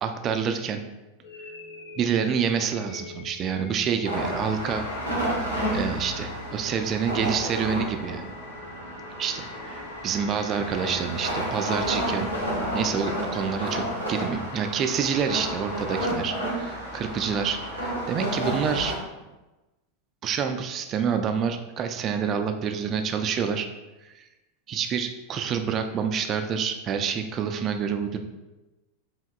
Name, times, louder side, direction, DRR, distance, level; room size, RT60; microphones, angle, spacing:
voice 1, 0.0-0.8 2.0-4.9 5.7-8.3 9.2-12.3 12.7-19.0 20.2-23.7 24.0-24.3 24.7-28.2, right 7 dB, 35° right, 7 dB, 0.3 m, -27 dB
sound 1, 1.2-13.3, left 4 dB, 55° left, 0.6 m, -46 dB
sound 2, 4.0-19.0, equal, 85° left, 0.9 m, -31 dB
4.7 x 2.8 x 2.2 m, 1.1 s
figure-of-eight pair, 85°, 0 cm